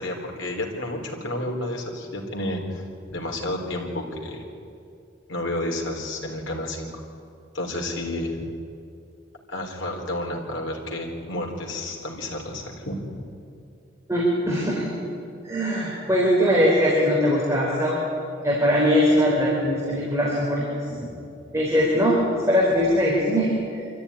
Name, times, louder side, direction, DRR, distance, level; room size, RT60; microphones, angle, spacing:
voice 1, 0.0-2.6 3.1-4.4 5.3-7.0 7.5-8.5 9.5-13.0, left 1 dB, 75° left, 1 dB, 4.0 m, -30 dB
voice 2, 14.1-15.0 15.4-18.0 18.4-21.1 21.5-23.5, equal, 15° right, -4 dB, 4.1 m, -21 dB
25.5 x 14.5 x 9.9 m, 2.5 s
head